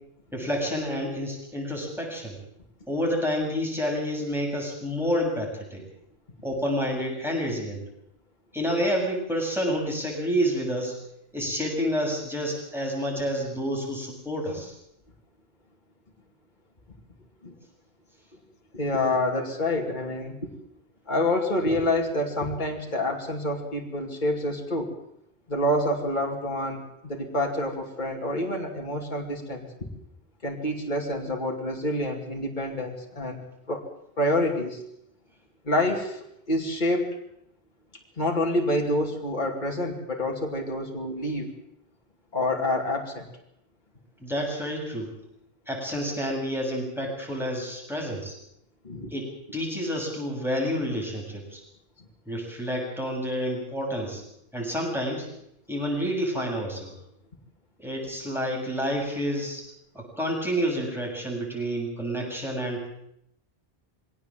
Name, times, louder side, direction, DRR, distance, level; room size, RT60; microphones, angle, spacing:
voice 1, 0.3-2.4 2.9-5.8 6.4-7.8 8.5-11.0 11.3-14.7 44.2-45.1 45.7-48.3 49.1-51.6 52.3-54.2 54.5-55.3 55.7-56.9 57.8-59.6 59.9-62.8, equal, ahead, -1 dB, 7.2 m, -29 dB
voice 2, 18.7-20.5 21.1-24.9 25.5-29.9 30.4-33.4 33.7-33.8 34.2-34.8 35.7-37.2 38.2-41.5 42.3-43.3 48.8-49.1, left 1 dB, 45° left, 0 dB, 2.7 m, -27 dB
22.5 x 17.5 x 7.5 m, 0.77 s
omnidirectional pair, 1.1 m